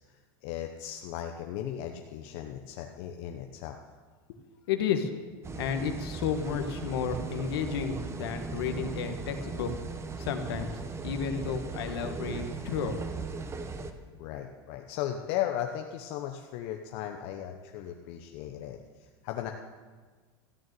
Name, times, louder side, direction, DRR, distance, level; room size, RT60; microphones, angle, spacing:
voice 1, 0.4-3.8 14.2-18.8 19.2-19.5, left 11 dB, 60° left, 4 dB, 1.0 m, -36 dB
voice 2, 4.7-5.1 5.5-9.7 10.2-10.7 11.0-13.0, left 7 dB, 80° left, 7 dB, 1.5 m, -32 dB
sound 1, 5.4-13.9, right 4 dB, 20° right, 1.1 m, -38 dB
14.0 x 6.5 x 9.3 m, 1.4 s
supercardioid pair, 110°, 13 cm